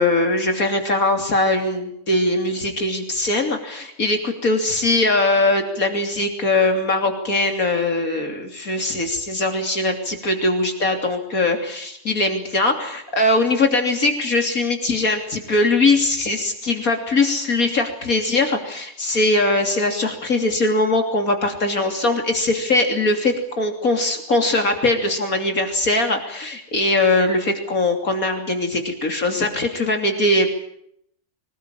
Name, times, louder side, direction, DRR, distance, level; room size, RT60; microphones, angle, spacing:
voice 1, 0.0-30.5, left 2 dB, 70° left, 4 dB, 3.5 m, -21 dB
26.0 x 19.5 x 8.9 m, 0.72 s
omnidirectional pair, 1.6 m